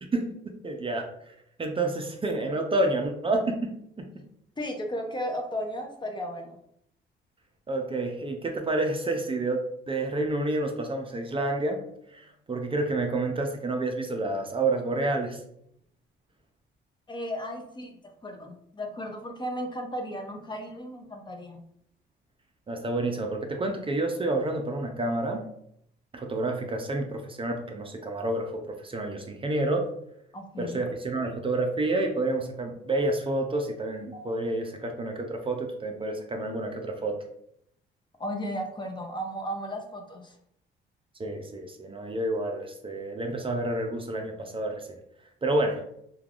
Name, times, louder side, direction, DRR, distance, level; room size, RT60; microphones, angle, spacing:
voice 1, 0.6-4.1 7.7-11.8 12.1-15.4 22.7-25.4 26.1-29.9 30.6-37.2 41.2-45.0 45.4-45.8, right 2 dB, 25° right, 3 dB, 0.4 m, -29 dB
voice 2, 4.6-6.6 17.1-21.6 30.3-30.8 38.2-40.4, equal, 25° left, 3 dB, 0.5 m, -35 dB
3.2 x 2.3 x 2.4 m, 0.73 s
cardioid pair, 90°, 20 cm